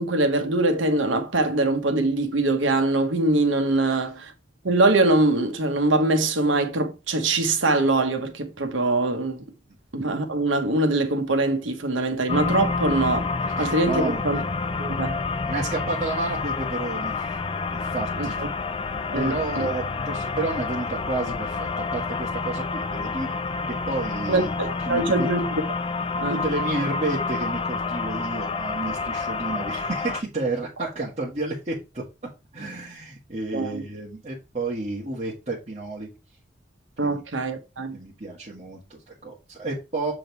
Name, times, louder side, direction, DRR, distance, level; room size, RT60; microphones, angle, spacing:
voice 1, 0.0-4.3 4.6-9.4 9.9-13.3 13.6-14.4 14.8-15.2 18.2-18.5 19.1-19.7 24.3-25.4 26.2-26.4 33.5-33.8 37.0-38.0, right 2 dB, 85° right, 1.2 m, -23 dB
sound 1, 12.3-30.2, left 4 dB, 30° left, 0.4 m, -28 dB
voice 2, 13.6-14.2 15.5-17.4 17.7-18.4 19.1-23.4 23.9-24.5 24.9-25.3 26.3-32.0 32.5-36.1 37.0-37.2 37.9-40.1, right 2 dB, 35° right, 1.7 m, -31 dB
7.1 x 3.8 x 4.6 m
head